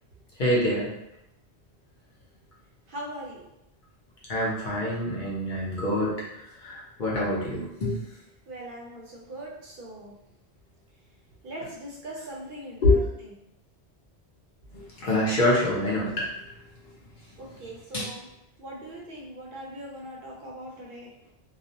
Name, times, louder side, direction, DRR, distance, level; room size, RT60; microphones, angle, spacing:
voice 1, 0.4-0.9 4.3-8.0 12.8-13.0 14.7-16.3 17.9-18.1, left 1 dB, 55° left, -6 dB, 0.7 m, -25 dB
voice 2, 2.9-3.5 8.5-10.1 11.4-13.3 17.4-18.3 18.6-21.3, right 1 dB, 60° right, -3 dB, 0.6 m, -41 dB
2.3 x 2.0 x 2.7 m, 0.83 s
omnidirectional pair, 1.1 m